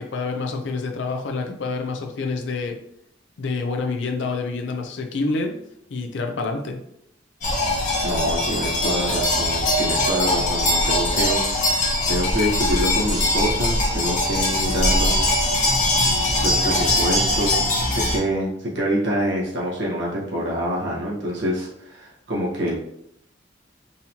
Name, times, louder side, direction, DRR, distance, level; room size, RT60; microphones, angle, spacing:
voice 1, 0.0-2.8 3.4-5.6 5.9-6.8, left 3 dB, 70° left, 3 dB, 0.5 m, -27 dB
sound 1, 7.4-18.2, left 1 dB, 40° left, 1.0 m, -21 dB
voice 2, 8.0-15.3 16.4-22.8, equal, 75° right, -4 dB, 1.2 m, -26 dB
3.9 x 2.8 x 2.8 m, 0.72 s
head